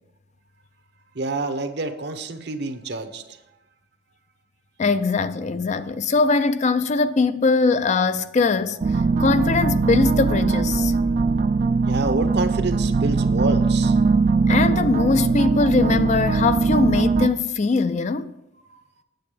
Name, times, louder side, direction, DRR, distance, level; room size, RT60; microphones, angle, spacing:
voice 1, 1.1-3.4 9.1-9.2 11.3-14.0 18.7-18.8, right 2 dB, 55° right, 0.9 m, -28 dB
voice 2, 4.8-8.8 9.2-10.9 14.5-18.3, left 4 dB, 35° left, 0.4 m, -21 dB
sound 1, 8.8-17.3, right 4 dB, 40° right, 0.4 m, -20 dB
9.2 x 7.5 x 5.0 m
head